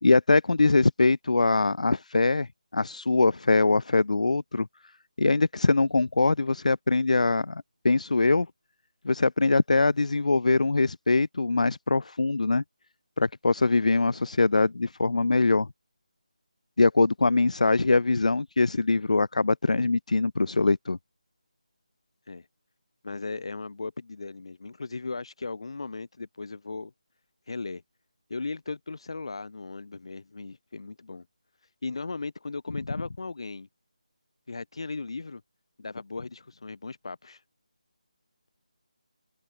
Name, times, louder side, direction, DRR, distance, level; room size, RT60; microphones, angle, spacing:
voice 1, 0.0-2.5 2.7-4.7 5.2-8.5 9.0-12.6 13.2-15.7 16.8-21.0, left 3 dB, 75° left, 0.5 m, -23 dB
voice 2, 23.0-26.9 27.5-27.8 28.3-31.3 31.8-33.7 34.5-35.4 35.8-37.4, left 3 dB, 50° left, 1.9 m, -37 dB
figure-of-eight pair, 175°, 4 cm